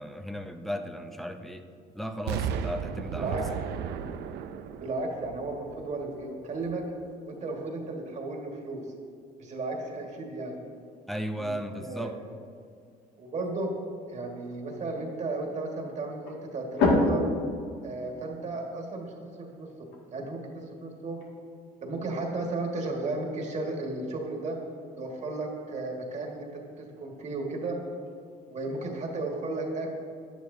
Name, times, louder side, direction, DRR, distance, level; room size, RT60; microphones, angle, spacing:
voice 1, 0.0-1.6 1.9-3.4 4.0-4.2 11.1-12.1, equal, ahead, 5 dB, 0.6 m, -35 dB
Explosion, 2.3-6.2 6.7-6.8, right 8 dB, 80° right, 0.5 m, -35 dB
voice 2, 3.1-3.5 4.8-6.9 7.3-8.8 9.4-10.6 11.3-12.1 13.2-13.7 14.1-17.2 17.8-19.7 20.1-21.2 21.8-24.6 25.0-27.8 28.5-29.9, right 2 dB, 45° right, 0 dB, 1.8 m, -34 dB
sound 1, 9.7-29.0, left 2 dB, 85° left, 2.0 m, -36 dB
10.5 x 9.6 x 2.7 m, 2.3 s
cardioid pair, 110°, 17 cm